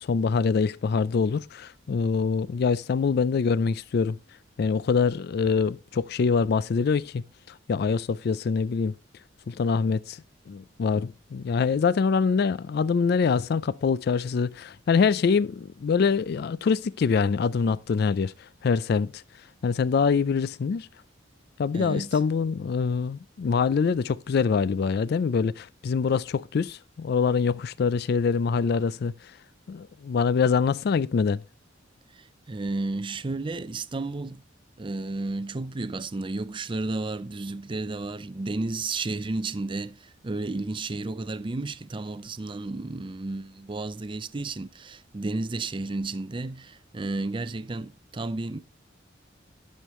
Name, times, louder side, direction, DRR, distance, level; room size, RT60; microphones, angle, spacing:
voice 1, 0.0-4.2 4.6-8.9 9.5-19.2 19.6-20.9 21.6-29.1 29.7-31.4, left 5 dB, 55° left, 0.4 m, -25 dB
voice 2, 21.7-22.2 32.1-34.4 34.8-48.6, right 2 dB, 25° right, 0.5 m, -32 dB
12.0 x 6.5 x 3.1 m
head